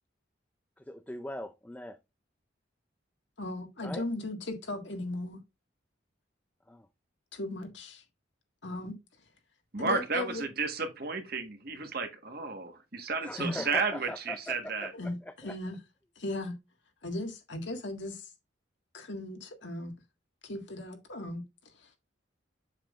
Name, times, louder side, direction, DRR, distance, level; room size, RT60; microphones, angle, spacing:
voice 1, 0.8-2.0 3.8-4.0 6.7-6.9 13.2-14.9 15.3-15.6, left 1 dB, 10° left, 0.4 m, -40 dB
voice 2, 3.4-5.4 7.3-8.0 8.6-8.9 9.8-10.4 13.4-13.6 15.0-15.8 16.1-16.5 17.0-18.3 18.9-19.9 20.4-21.4 21.8-21.9, left 1 dB, 65° left, 1.8 m, -37 dB
voice 3, 9.7-14.9, right 4 dB, 50° right, 1.4 m, -33 dB
7.4 x 7.0 x 2.4 m
head